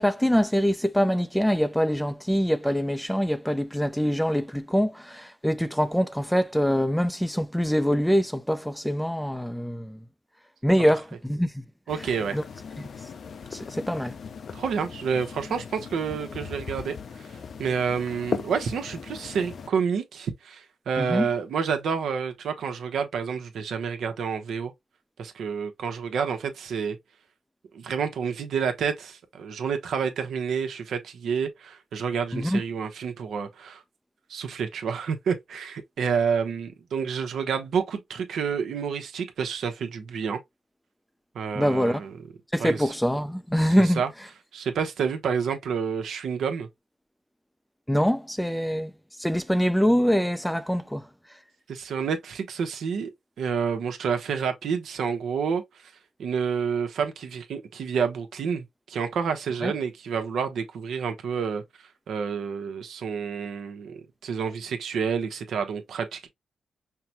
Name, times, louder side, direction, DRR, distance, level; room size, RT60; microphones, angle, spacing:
voice 1, 0.0-10.0 10.6-11.6 12.3-12.4 12.8-12.9 13.5-14.1 21.0-21.3 32.3-32.6 41.6-42.0 42.5-44.0 47.9-48.9 49.2-51.1 59.6-59.7, equal, 5° left, 0.4 m, -24 dB
sound 1, 11.9-19.7, left 6 dB, 60° left, 0.5 m, -38 dB
voice 2, 11.9-12.4 14.5-16.9 17.6-24.7 25.2-27.0 27.7-33.8 34.3-40.4 41.3-42.1 42.6-42.9 44.0-44.1 44.5-46.7 51.7-53.1 53.4-55.6 56.2-61.6 62.1-66.3, right 6 dB, 80° right, 0.9 m, -29 dB
5.7 x 2.2 x 2.8 m
cardioid pair, 85°, 0 cm